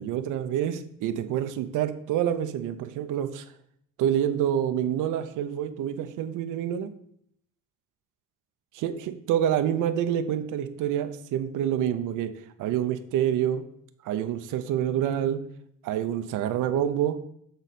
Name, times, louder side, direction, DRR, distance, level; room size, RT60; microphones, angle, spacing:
voice 1, 0.0-3.5 4.0-6.9 8.7-12.3 12.6-13.6 14.0-15.4 15.8-17.2, right 10 dB, 90° right, 9 dB, 0.6 m, -27 dB
8.0 x 4.0 x 4.1 m, 0.69 s
cardioid pair, 90°, 30 cm